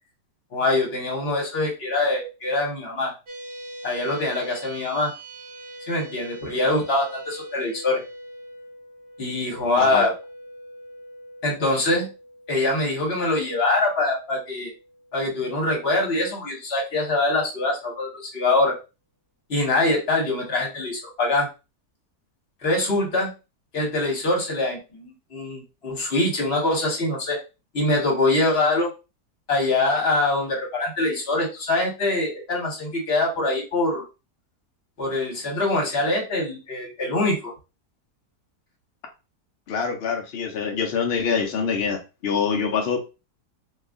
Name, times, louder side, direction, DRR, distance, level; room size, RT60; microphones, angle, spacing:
voice 1, 0.5-3.1 3.8-5.1 5.9-8.0 9.2-10.1 11.4-12.1 12.5-14.7 15.1-18.7 19.5-21.5 22.6-23.3 23.7-27.4 27.7-28.9 29.5-34.0 35.0-37.5, left 2 dB, 45° left, -1 dB, 1.2 m, -24 dB
sound 1, 3.3-15.9, equal, 60° right, 1.1 m, -42 dB
voice 2, 39.7-43.0, left 6 dB, 70° left, 3 dB, 0.6 m, -25 dB
2.8 x 2.4 x 3.5 m, 0.29 s
omnidirectional pair, 1.7 m